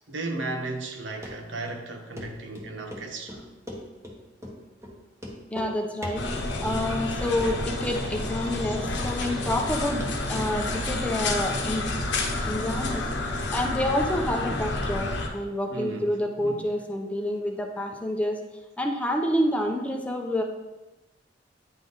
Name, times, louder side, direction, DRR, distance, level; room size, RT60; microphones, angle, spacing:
voice 1, 0.1-3.5 15.7-16.1 16.4-16.6, right 2 dB, 90° right, 1.0 m, -35 dB
Run, 1.2-1.3 1.7-1.8 2.2-2.3 2.5-4.2 4.4-4.6 4.8-4.9 5.2-5.7 6.0-6.5 6.9-7.3 7.6-7.7 8.1-8.2 8.5-9.0 9.2-9.7 10.0-11.2 11.5-11.6 11.9-12.0, left 1 dB, 15° right, 1.1 m, -39 dB
voice 2, 5.5-6.2 6.6-11.9 12.4-13.0 13.5-18.4 18.8-20.4, left 1 dB, 5° left, 0.6 m, -28 dB
sound 1, 6.1-15.3, left 2 dB, 70° left, 0.9 m, -29 dB
9.6 x 3.4 x 4.0 m
head